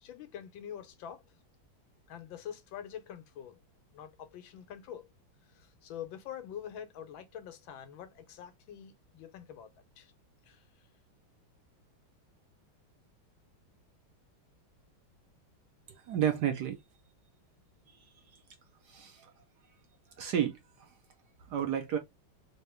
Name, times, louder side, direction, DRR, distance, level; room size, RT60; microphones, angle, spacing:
voice 1, 0.0-1.2 2.1-3.6 3.9-5.1 5.5-9.7 10.0-10.1 10.4-10.6, left 9 dB, 75° left, 1.5 m, -45 dB
voice 2, 16.1-16.8 18.9-19.3 20.2-20.9 21.5-22.0, right 9 dB, 65° right, 1.1 m, -31 dB
3.7 x 2.9 x 3.3 m
omnidirectional pair, 2.2 m